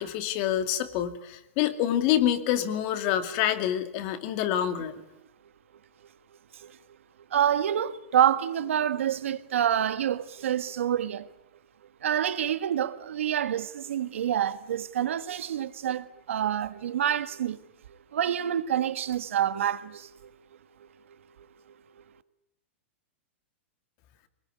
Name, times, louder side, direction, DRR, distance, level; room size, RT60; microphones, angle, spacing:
voice 1, 0.0-5.0, left 11 dB, 45° left, 2.4 m, -27 dB
voice 2, 7.3-11.3 12.0-17.6 18.1-20.3, right 10 dB, 85° right, 1.7 m, -27 dB
24.0 x 20.5 x 9.6 m
supercardioid pair, 150°, 7 cm